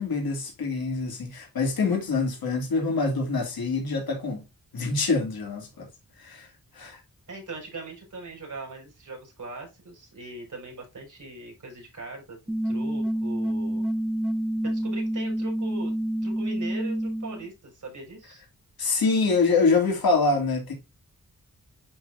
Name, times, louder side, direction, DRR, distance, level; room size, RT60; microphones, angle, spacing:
voice 1, 0.0-4.4 4.7-5.9 6.2-6.5 6.7-7.0 18.8-20.7, left 4 dB, 85° left, 2.6 m, -25 dB
voice 2, 7.3-12.4 12.6-13.9 14.6-15.9 16.2-18.4, right 2 dB, 55° right, 4.6 m, -40 dB
sound 1, 12.5-17.4, right 1 dB, ahead, 0.8 m, -28 dB
10.5 x 3.8 x 2.6 m
wide cardioid pair, 120°, 35 cm